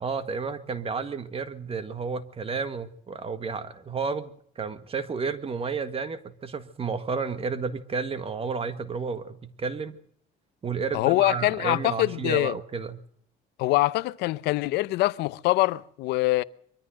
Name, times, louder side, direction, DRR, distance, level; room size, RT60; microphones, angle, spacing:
voice 1, 0.0-10.0 10.6-13.0, right 5 dB, 35° right, 1.7 m, -31 dB
voice 2, 10.9-12.6 13.6-16.4, left 18 dB, 90° left, 0.8 m, -24 dB
23.5 x 14.0 x 7.9 m
cardioid pair, 110°, 17 cm